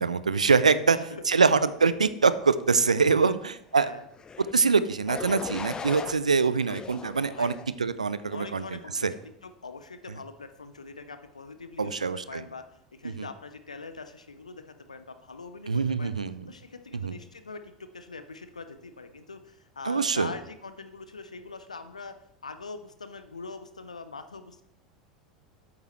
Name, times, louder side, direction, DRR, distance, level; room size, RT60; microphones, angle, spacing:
voice 1, 0.0-3.9 4.5-7.5 7.8-9.1 11.8-12.4 13.0-13.3 15.7-16.5 17.0-17.1 19.9-20.3, right 5 dB, 80° right, 15 dB, 0.4 m, -24 dB
voice 2, 0.8-1.2 3.0-3.4 3.8-4.1 7.3-7.6 8.3-12.0 12.3-12.7 12.9-16.1 16.5-24.6, left 4 dB, 80° left, 10 dB, 0.6 m, -43 dB
sound 1, 4.2-4.5 5.1-6.1 6.7-7.7 8.3-8.7, left 5 dB, 20° left, 0.7 m, -38 dB
8.5 x 8.4 x 3.1 m, 0.76 s
figure-of-eight pair, 80°, 4 cm